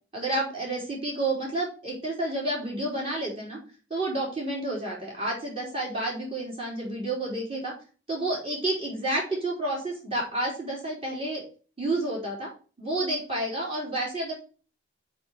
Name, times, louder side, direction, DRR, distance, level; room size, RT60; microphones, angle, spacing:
voice 1, 0.1-3.6 3.9-7.7 8.1-11.4 11.8-12.5 12.8-14.3, right 1 dB, 30° right, -3 dB, 3.9 m, -30 dB
6.0 x 5.3 x 6.5 m, 0.38 s
head